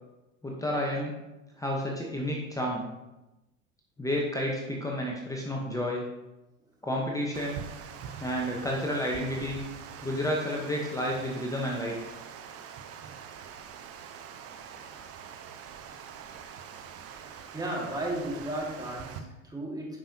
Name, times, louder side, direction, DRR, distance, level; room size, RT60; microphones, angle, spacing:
voice 1, 0.4-1.1 1.6-2.9 4.0-6.0 6.8-7.6 8.2-9.6 10.0-12.0, equal, 10° left, -2 dB, 1.2 m, -31 dB
Water, 7.3-19.2, right 7 dB, 35° right, 0.8 m, -44 dB
voice 2, 17.2-20.0, right 1 dB, 10° right, -3 dB, 2.3 m, -35 dB
10.0 x 5.4 x 3.0 m, 0.99 s
hypercardioid pair, 95°, 39 cm